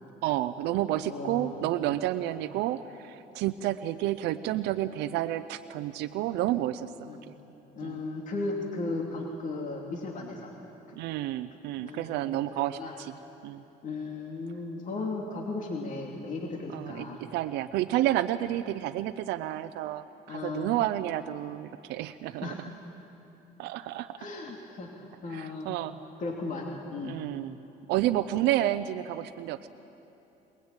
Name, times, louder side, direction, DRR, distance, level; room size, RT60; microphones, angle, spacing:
voice 1, 0.2-7.1 7.8-8.0 10.9-13.1 13.4-13.6 16.7-22.6 23.6-24.2 25.3-26.0 27.0-27.6 27.9-29.7, right 13 dB, 90° right, 10 dB, 0.6 m, -30 dB
voice 2, 1.1-1.5 2.3-2.4 7.1-7.2 7.8-10.5 11.8-12.4 12.7-12.9 13.8-17.2 20.3-20.8 22.4-22.6 24.2-25.8 26.2-27.2, left 3 dB, 50° left, 0 dB, 2.7 m, -36 dB
22.0 x 20.5 x 9.0 m, 3.0 s
cardioid pair, 110°, 17 cm